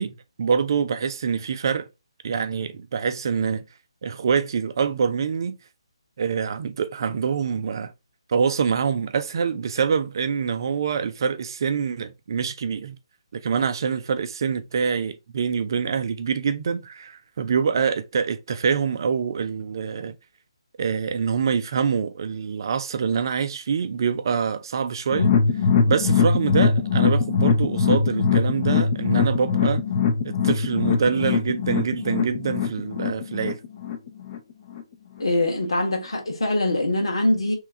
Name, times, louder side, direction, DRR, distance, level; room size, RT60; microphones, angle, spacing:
voice 1, 0.0-1.9 2.2-3.6 4.0-5.6 6.2-7.9 8.3-13.0 13.3-20.2 20.8-25.3 25.8-29.8 30.2-33.6, right 6 dB, 45° right, 0.5 m, -25 dB
sound 1, 25.1-34.4 34.7-34.8 35.2-35.3, left 5 dB, 35° left, 0.7 m, -22 dB
voice 2, 35.2-37.5, left 1 dB, 70° left, 1.6 m, -23 dB
3.3 x 3.1 x 3.6 m
figure-of-eight pair, 140°, 3 cm